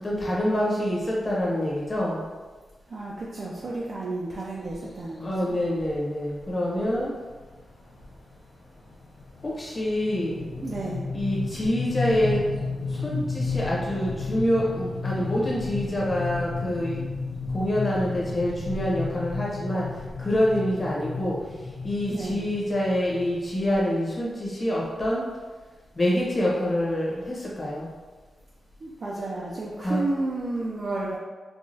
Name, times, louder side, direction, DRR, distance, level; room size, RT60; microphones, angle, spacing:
voice 1, 0.0-2.3 5.2-7.2 9.4-10.5 11.1-12.5 12.8-17.0 17.5-19.9 20.2-25.3 25.9-27.9 29.8-30.0, equal, 25° left, -5 dB, 1.0 m, -26 dB
voice 2, 2.9-5.6 10.6-11.0 22.1-22.4 28.8-31.2, right 2 dB, 50° right, -5 dB, 0.5 m, -32 dB
sound 1, 4.7-5.0 5.8-5.9 6.3-6.4 6.7-7.0 7.4-23.8, left 4 dB, 65° left, 0.8 m, -33 dB
4.7 x 2.4 x 2.7 m, 1.3 s
wide cardioid pair, 135°, 0 cm